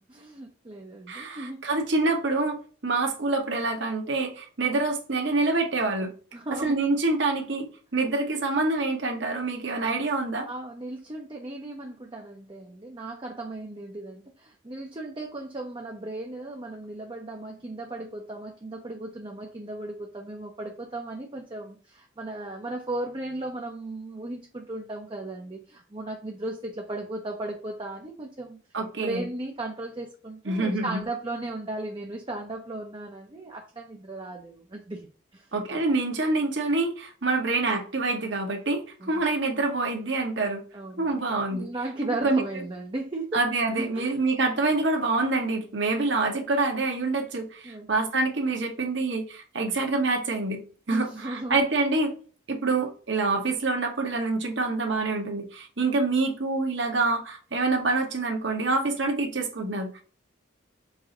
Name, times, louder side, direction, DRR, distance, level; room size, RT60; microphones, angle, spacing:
voice 1, 0.1-1.6 6.3-6.8 10.5-28.6 29.0-35.5 39.0-39.2 40.7-43.4 43.8-44.1 47.6-47.9 50.9-51.7, right 2 dB, 25° right, 0 dB, 0.6 m, -36 dB
voice 2, 1.1-6.1 6.6-10.5 28.7-29.2 30.4-31.0 35.5-40.6 41.0-41.7 42.2-42.4 43.3-50.6 50.9-52.1 52.5-60.0, right 3 dB, 60° right, 3 dB, 1.1 m, -26 dB
4.7 x 2.7 x 3.8 m, 0.39 s
head